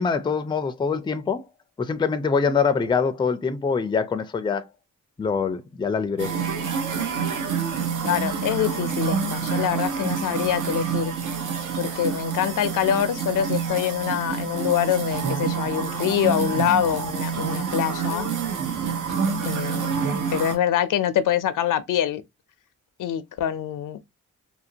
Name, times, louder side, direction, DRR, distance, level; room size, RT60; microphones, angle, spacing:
voice 1, 0.0-1.4 1.8-4.6 5.2-6.3, left 5 dB, 15° left, 0.3 m, -24 dB
sound 1, 6.2-20.6, right 6 dB, 75° right, 0.8 m, -27 dB
voice 2, 8.0-11.1 11.8-18.3 19.4-20.0 20.3-22.2 23.0-24.0, left 10 dB, 75° left, 0.5 m, -25 dB
2.8 x 2.5 x 2.7 m
cardioid pair, 95°, 32 cm